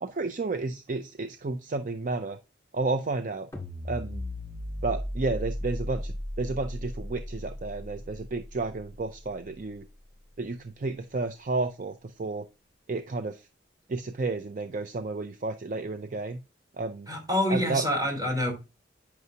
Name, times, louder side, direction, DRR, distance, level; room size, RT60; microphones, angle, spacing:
voice 1, 0.0-2.4 2.7-3.5 3.8-4.2 4.8-9.9 10.4-12.5 12.9-13.5 13.9-16.4 16.8-17.1 17.5-17.9, right 3 dB, 45° right, 0.5 m, -32 dB
sound 1, 3.5-9.8, left 1 dB, 15° left, 2.0 m, -36 dB
voice 2, 17.1-18.5, left 1 dB, 20° right, 3.6 m, -26 dB
9.3 x 5.9 x 2.7 m
head